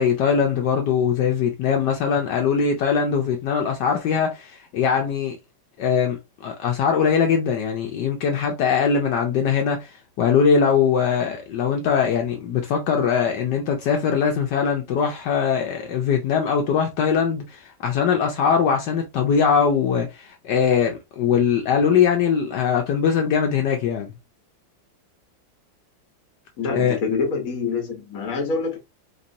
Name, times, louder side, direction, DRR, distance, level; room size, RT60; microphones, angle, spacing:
voice 1, 0.0-5.4 5.8-24.1 26.7-27.0, left 6 dB, 70° left, 1.1 m, -21 dB
voice 2, 26.6-28.8, left 4 dB, 50° left, 1.3 m, -26 dB
4.2 x 2.9 x 2.6 m
omnidirectional pair, 2.1 m